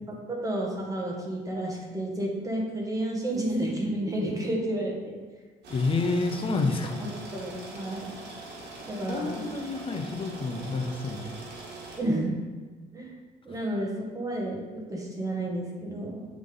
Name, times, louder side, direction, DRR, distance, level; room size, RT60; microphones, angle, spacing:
voice 1, 0.1-5.2 7.0-8.1 8.9-9.5 12.0-12.3 12.9-13.2 13.4-16.3, right 1 dB, 20° right, -2 dB, 1.6 m, -31 dB
sound 1, 5.6-12.0, right 3 dB, 80° right, 1.4 m, -42 dB
voice 2, 5.7-7.0 9.1-11.3, left 3 dB, 30° left, 4 dB, 0.8 m, -29 dB
7.7 x 3.6 x 3.9 m, 1.4 s
cardioid pair, 100°, 17 cm